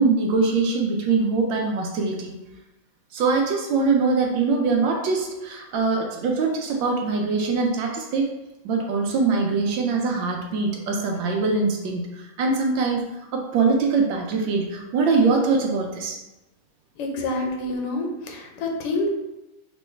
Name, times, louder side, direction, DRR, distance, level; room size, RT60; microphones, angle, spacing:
voice 1, 0.0-2.3 3.1-8.3 8.6-13.0 13.3-16.2, right 4 dB, 75° right, 1 dB, 1.2 m, -23 dB
voice 2, 17.0-19.1, left 2 dB, 85° left, 2 dB, 1.7 m, -27 dB
5.3 x 3.0 x 3.3 m, 1.0 s
omnidirectional pair, 2.4 m